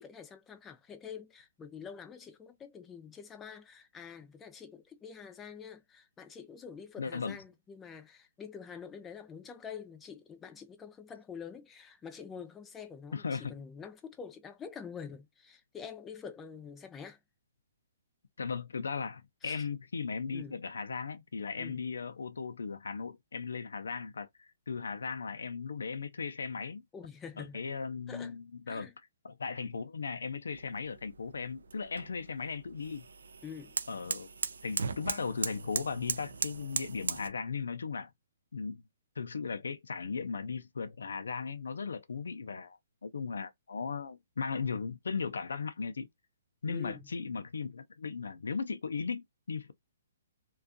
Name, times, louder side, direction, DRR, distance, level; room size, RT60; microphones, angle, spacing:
voice 1, 0.0-17.2 19.4-19.7 20.3-20.6 21.6-21.8 26.9-27.6 28.1-28.3 28.7-28.9 33.4-33.8 46.7-47.1, left 6 dB, 15° left, 0.5 m, -46 dB
voice 2, 7.0-7.4 13.1-13.5 18.4-26.8 27.4-28.9 29.2-33.1 33.9-34.3 34.6-38.1 38.5-38.8 39.2-46.1 46.6-49.7, left 5 dB, 85° left, 0.4 m, -37 dB
sound 1, 30.5-37.3, right 5 dB, 85° right, 0.4 m, -38 dB
2.5 x 2.3 x 2.4 m
hypercardioid pair, 150°, 0 cm